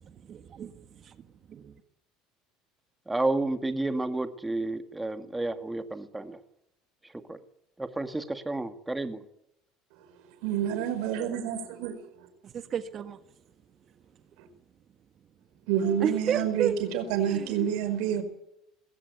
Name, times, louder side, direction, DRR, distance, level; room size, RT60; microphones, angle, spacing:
voice 1, 0.0-1.7 12.4-13.2 16.0-17.5, right 8 dB, 40° right, 1.6 m, -33 dB
voice 2, 3.1-6.4 7.0-7.4 7.8-9.2, right 2 dB, 10° right, 1.9 m, -31 dB
voice 3, 10.4-12.3 15.7-18.2, right 9 dB, 75° right, 5.0 m, -28 dB
21.0 x 17.0 x 9.2 m
supercardioid pair, 120°, 0 cm